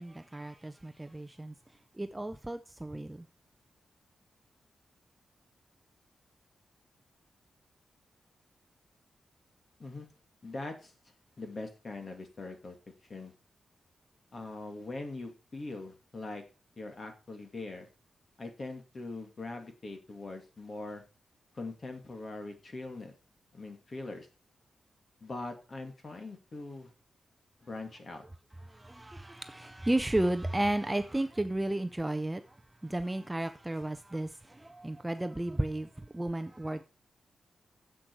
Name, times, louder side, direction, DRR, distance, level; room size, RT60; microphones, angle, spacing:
voice 1, 0.0-1.5 2.0-3.3 28.7-32.6 32.8-36.8, right 1 dB, 10° right, 0.5 m, -33 dB
voice 2, 10.4-10.9 11.4-12.8 13.1-13.3 14.3-16.4 16.8-17.9 18.4-21.0 21.5-23.1 23.5-24.3 25.2-26.9 27.6-28.2, left 2 dB, 35° left, 2.3 m, -42 dB
10.5 x 7.8 x 4.7 m
wide cardioid pair, 140°, 0 cm